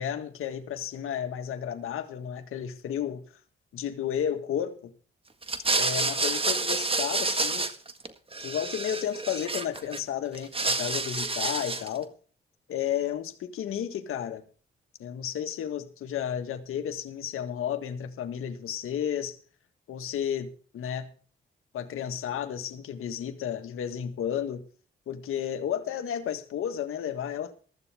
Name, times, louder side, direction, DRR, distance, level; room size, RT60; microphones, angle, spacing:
voice 1, 0.0-3.2 3.7-4.9 5.8-7.6 8.4-12.1 12.7-14.4 15.0-19.4 19.9-21.1 21.7-24.6 25.1-27.5, left 9 dB, 90° left, 1.7 m, -32 dB
sound 1, 5.4-8.1 8.3-10.0 10.3-12.0, right 3 dB, 25° right, 1.7 m, -29 dB
15.0 x 14.0 x 3.5 m
cardioid pair, 80°, 21 cm